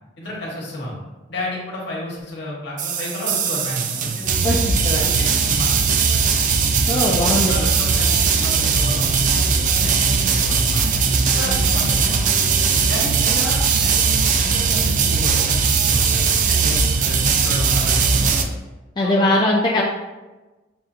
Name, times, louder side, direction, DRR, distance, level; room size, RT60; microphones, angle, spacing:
voice 1, 0.2-1.0 1.3-4.4 4.9-5.7 7.0-10.8 11.2-12.3 12.9-18.5 19.0-19.2, left 1 dB, 65° left, -4 dB, 1.3 m, -31 dB
sound 1, 2.8-18.4, right 5 dB, 45° right, 0.3 m, -19 dB
voice 2, 6.9-7.5 19.0-19.8, left 1 dB, 25° left, -3 dB, 0.4 m, -19 dB
5.6 x 2.5 x 2.5 m, 1.1 s
head